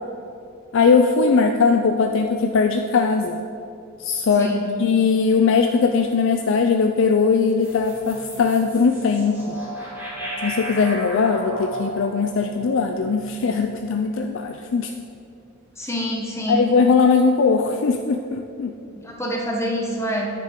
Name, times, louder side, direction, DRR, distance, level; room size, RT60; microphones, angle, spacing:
voice 1, 0.7-3.4 4.0-4.5 4.8-9.6 10.4-14.9 16.5-18.8, left 5 dB, 65° left, 4 dB, 0.4 m, -19 dB
voice 2, 4.4-4.7 15.8-16.7 18.9-20.3, equal, 15° left, -1 dB, 1.1 m, -26 dB
sound 1, 7.6-13.9, right 1 dB, 10° right, 2.1 m, -34 dB
9.6 x 9.6 x 3.7 m, 2.6 s
head